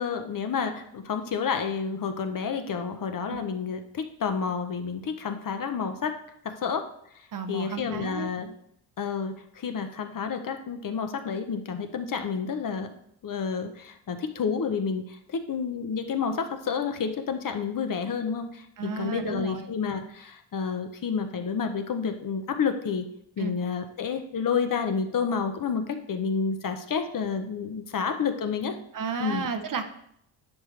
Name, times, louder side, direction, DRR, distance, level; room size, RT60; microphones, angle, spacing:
voice 1, 0.0-6.2 6.4-6.8 7.5-8.5 9.0-13.0 13.2-23.1 23.4-28.8 29.2-29.5, left 6 dB, 45° left, 7 dB, 0.8 m, -30 dB
voice 2, 7.3-8.3 18.8-19.7 23.4-23.5 28.9-29.8, right 5 dB, 45° right, 8 dB, 0.7 m, -32 dB
10.5 x 6.5 x 3.3 m, 0.72 s
wide cardioid pair, 145°, 46 cm